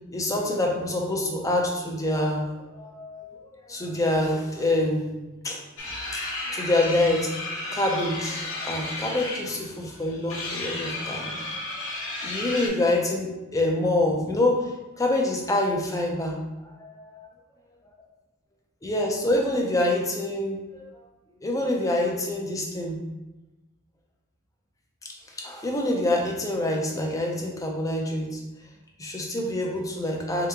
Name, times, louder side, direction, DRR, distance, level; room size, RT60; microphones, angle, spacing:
voice 1, 0.1-3.4 3.7-5.6 6.1-11.3 12.2-14.7 15.0-16.4 16.6-17.1 18.8-20.9 21.4-23.0 25.4-28.4 29.0-30.5, left 1 dB, 15° left, 0 dB, 0.6 m, -26 dB
sound 1, 5.8-12.7, left 2 dB, 65° left, 1.0 m, -33 dB
3.5 x 2.9 x 3.6 m, 1.0 s
head